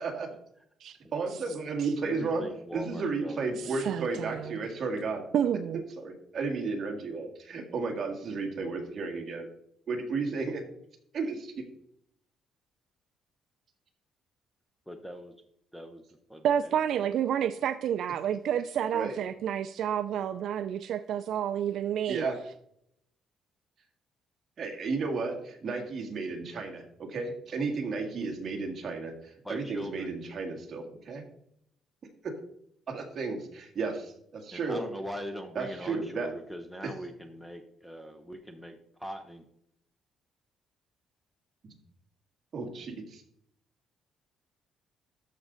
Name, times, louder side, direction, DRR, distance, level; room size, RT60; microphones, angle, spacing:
voice 1, 1.1-5.2 6.0-9.5 9.9-10.6 11.1-11.6 18.9-19.2 22.1-22.3 24.6-31.2 32.9-34.8 35.6-36.3 36.8-36.9 42.5-43.2, right 4 dB, 35° right, 1 dB, 1.9 m, -33 dB
voice 2, 2.0-3.8 4.0-4.2 4.4-4.6 14.9-15.3 15.7-16.0 16.3-16.5 29.4-30.1 33.9-34.0 34.5-39.5, equal, 5° left, 7 dB, 0.6 m, -41 dB
voice 3, 3.6-4.7 5.3-5.8 16.4-22.2, right 9 dB, 60° right, 10 dB, 0.3 m, -29 dB
13.0 x 5.2 x 3.9 m, 0.73 s
cardioid pair, 165°, 0 cm